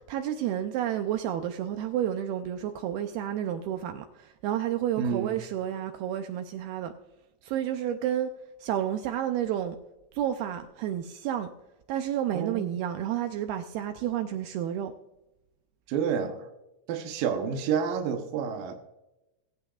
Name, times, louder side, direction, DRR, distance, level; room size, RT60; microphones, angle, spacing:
voice 1, 0.1-6.9 7.4-8.3 8.6-9.8 10.1-11.5 11.9-14.9, right 10 dB, 90° right, 2.1 m, -30 dB
voice 2, 5.0-5.4 12.3-12.6 15.9-16.5 16.9-18.7, right 7 dB, 75° right, 2.1 m, -29 dB
20.5 x 8.5 x 2.4 m
omnidirectional pair, 5.1 m